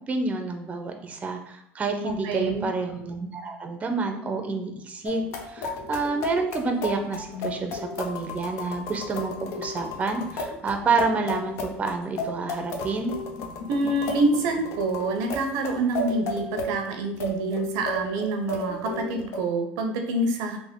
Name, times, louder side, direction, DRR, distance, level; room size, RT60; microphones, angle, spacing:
voice 1, 0.1-13.1, right 4 dB, 25° right, 5 dB, 0.5 m, -29 dB
voice 2, 2.0-2.7 13.7-20.6, right 2 dB, 80° right, 4 dB, 0.6 m, -27 dB
sound 1, 5.0-19.4, left 2 dB, 70° left, 0.6 m, -34 dB
3.3 x 2.1 x 3.6 m, 0.81 s
cardioid pair, 115°, 5 cm